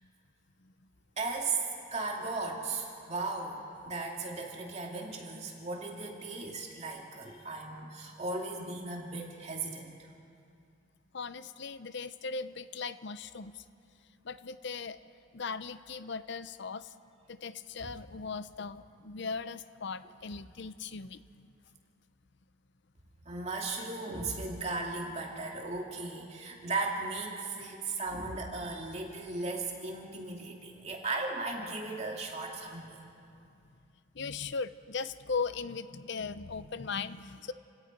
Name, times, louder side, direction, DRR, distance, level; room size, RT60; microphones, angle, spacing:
voice 1, 1.2-1.6 1.9-10.1 17.8-17.9 23.2-33.0, right 3 dB, 30° right, -1 dB, 2.6 m, -36 dB
voice 2, 11.1-13.6 14.2-15.0 15.3-16.9 17.3-21.5 34.1-37.5, left 5 dB, 55° left, 13 dB, 0.7 m, -38 dB
30.0 x 17.0 x 5.3 m, 2.5 s
head